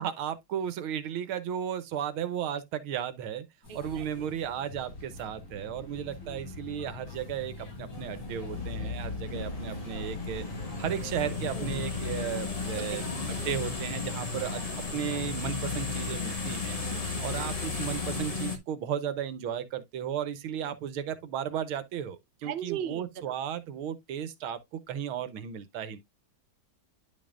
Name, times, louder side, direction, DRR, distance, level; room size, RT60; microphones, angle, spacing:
voice 1, 0.0-3.5 3.7-10.5 10.8-14.6 14.9-16.8 17.2-26.0, right 9 dB, 85° right, 1.8 m, -35 dB
sound 1, 3.6-14.9, left 3 dB, 70° left, 6.8 m, -43 dB
voice 2, 3.7-4.0 6.3-6.4 11.5-11.7 12.8-13.1 14.4-14.5 16.8-17.3 22.4-23.1, right 9 dB, 50° right, 0.7 m, -38 dB
sound 2, 7.9-18.6, left 4 dB, 20° left, 1.2 m, -34 dB
10.5 x 5.4 x 2.5 m
omnidirectional pair, 2.3 m